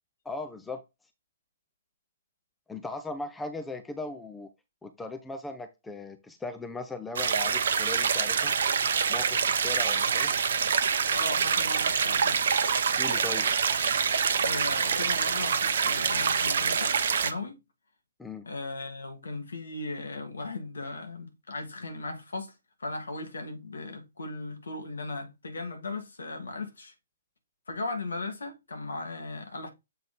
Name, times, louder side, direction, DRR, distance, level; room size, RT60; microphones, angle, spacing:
voice 1, 0.2-0.8 2.7-4.5 4.8-8.5 9.1-10.3 13.0-13.5 18.2-18.5, left 2 dB, 5° left, 0.6 m, -38 dB
sound 1, 7.2-17.3, right 6 dB, 55° right, 0.7 m, -26 dB
voice 2, 11.1-12.4 14.4-17.6 18.4-22.5 22.8-26.9 27.7-29.7, left 2 dB, 65° left, 2.0 m, -37 dB
7.7 x 3.8 x 3.7 m
figure-of-eight pair, 120°, 0 cm